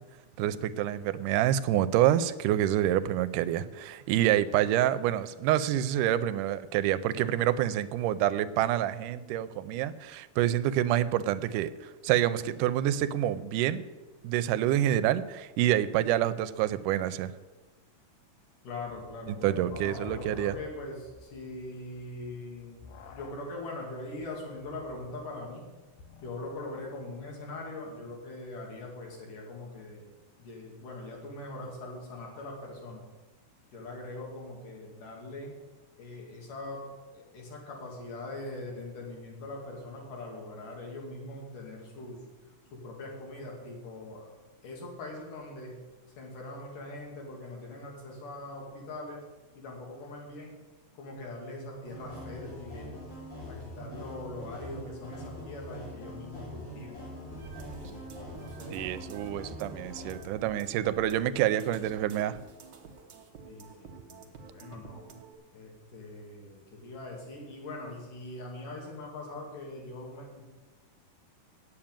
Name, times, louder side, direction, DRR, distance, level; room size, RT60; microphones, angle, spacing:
voice 1, 0.4-11.7 12.0-13.8 14.2-17.3 19.4-20.5 58.7-62.4, right 12 dB, 90° right, 14 dB, 2.1 m, -27 dB
voice 2, 18.6-25.7 26.2-30.1 30.4-33.0 33.7-35.5 36.0-36.8 37.1-42.2 42.7-44.3 44.6-45.7 46.2-49.2 49.6-50.6 50.9-53.0 53.5-57.0 58.4-58.8 63.4-65.1 65.5-70.4, left 2 dB, 85° left, -1 dB, 4.1 m, -42 dB
sound 1, 18.9-27.0, left 5 dB, 70° left, 1.9 m, -51 dB
sound 2, 51.9-60.2, left 1 dB, 40° left, 3.4 m, -43 dB
sound 3, 57.3-65.3, right 5 dB, 65° right, 1.1 m, -48 dB
8.7 x 7.4 x 8.9 m, 1.2 s
omnidirectional pair, 3.6 m